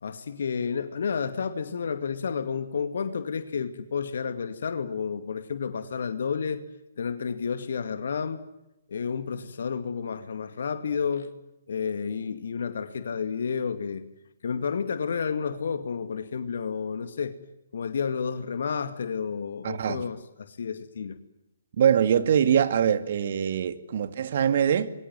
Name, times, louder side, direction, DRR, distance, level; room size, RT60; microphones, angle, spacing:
voice 1, 0.0-6.6 7.0-8.4 8.9-11.3 11.7-14.0 14.4-17.4 17.7-21.2, left 6 dB, 60° left, 2.3 m, -31 dB
voice 2, 19.6-20.0 21.8-24.9, right 8 dB, 50° right, 2.3 m, -23 dB
29.0 x 23.5 x 7.7 m
figure-of-eight pair, 130°, 0 cm